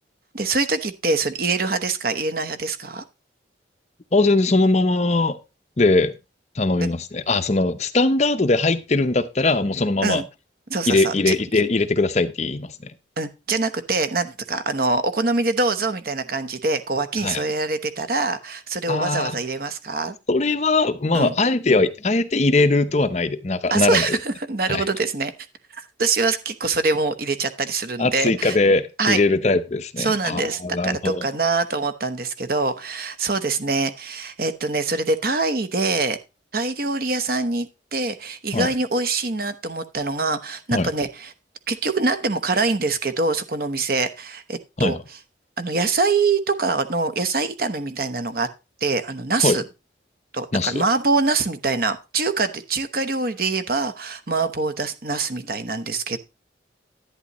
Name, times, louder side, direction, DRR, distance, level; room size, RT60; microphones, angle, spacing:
voice 1, 0.3-3.0 6.8-6.9 10.0-10.2 10.7-11.3 13.2-20.2 21.1-21.3 23.7-25.3 25.7-28.6 29.0-29.2 30.0-36.2 36.5-41.3 41.7-45.0 45.6-48.5 48.8-49.6 50.3-56.2, right 3 dB, 50° right, 1.0 m, -24 dB
voice 2, 4.1-5.4 5.8-6.1 6.6-10.2 10.9-12.9 17.2-17.4 18.9-19.4 20.3-24.2 24.7-24.9 28.0-31.3 38.5-38.7 40.7-40.9 44.8-45.0 49.4-49.6 50.5-50.8, left 2 dB, 35° left, 0.7 m, -20 dB
11.0 x 9.3 x 3.0 m
head